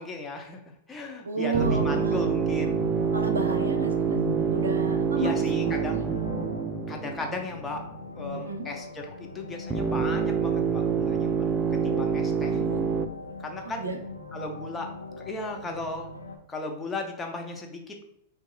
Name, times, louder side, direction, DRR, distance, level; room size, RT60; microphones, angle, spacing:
voice 1, 0.0-2.8 5.2-6.0 6.9-7.8 8.1-11.4 11.7-12.6 13.4-13.8 14.3-14.9 15.2-16.1 16.5-18.1, left 3 dB, 15° left, 2 dB, 0.7 m, -36 dB
voice 2, 1.2-2.3 3.1-4.2 4.5-6.0 8.3-8.7 12.4-13.1 13.6-14.0, right 4 dB, 80° right, 5 dB, 0.6 m, -33 dB
sound 1, 1.5-16.4, left 1 dB, 90° left, 0.4 m, -38 dB
sound 2, 1.5-7.9 9.7-13.1, right 6 dB, 20° right, 0.3 m, -26 dB
4.6 x 2.7 x 2.5 m, 0.73 s
figure-of-eight pair, 100°, 0 cm